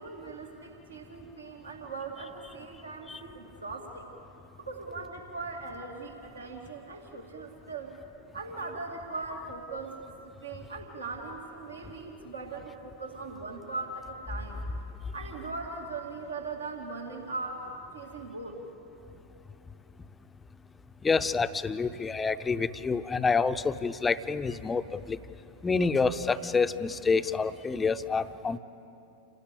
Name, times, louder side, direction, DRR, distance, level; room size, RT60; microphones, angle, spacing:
voice 1, 0.0-4.1 4.6-7.9 8.3-10.0 10.4-14.6 15.1-17.7 17.9-18.6, right 3 dB, 75° right, 1 dB, 2.4 m, -39 dB
voice 2, 21.0-25.2 25.6-28.6, left 4 dB, 15° left, 11 dB, 0.7 m, -28 dB
28.5 x 17.5 x 8.3 m, 2.9 s
figure-of-eight pair, 90°, 0 cm